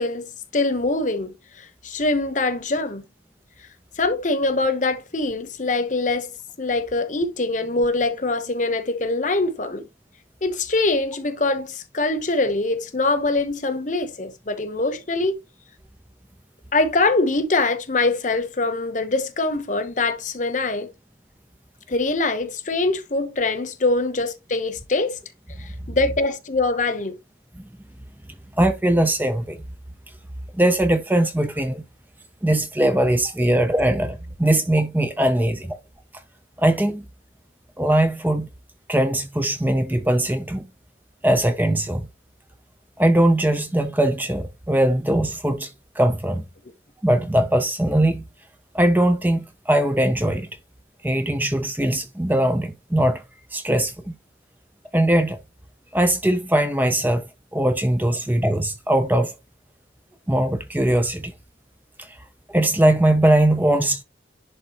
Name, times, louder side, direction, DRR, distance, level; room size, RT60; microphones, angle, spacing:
voice 1, 0.0-3.0 4.0-6.3 6.6-9.9 10.4-15.4 16.7-20.9 21.9-25.2 25.6-27.2, left 3 dB, 45° left, 1.0 m, -23 dB
voice 2, 28.6-29.6 30.5-31.8 32.4-35.8 36.6-37.0 37.8-38.5 38.9-40.7 41.2-42.1 43.0-46.5 47.0-48.3 48.7-50.5 51.0-53.2 53.5-54.2 54.9-55.4 55.9-57.2 57.5-59.4 60.3-61.3 62.0-62.2 62.5-64.0, right 1 dB, 10° right, 0.6 m, -20 dB
11.0 x 3.7 x 3.0 m
head